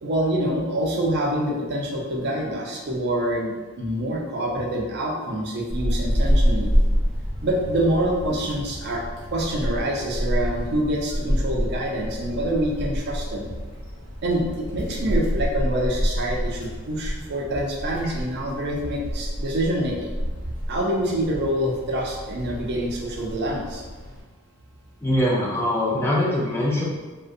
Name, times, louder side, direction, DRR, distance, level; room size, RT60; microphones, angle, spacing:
voice 1, 0.0-6.7 7.4-13.5 14.2-20.1 20.7-23.8, right 1 dB, 50° right, -1 dB, 0.4 m, -26 dB
Wind, 5.7-24.2, equal, 70° left, 0.8 m, -28 dB
voice 2, 25.0-26.8, left 1 dB, 10° left, -5 dB, 0.5 m, -22 dB
2.5 x 2.1 x 2.4 m, 1.3 s
head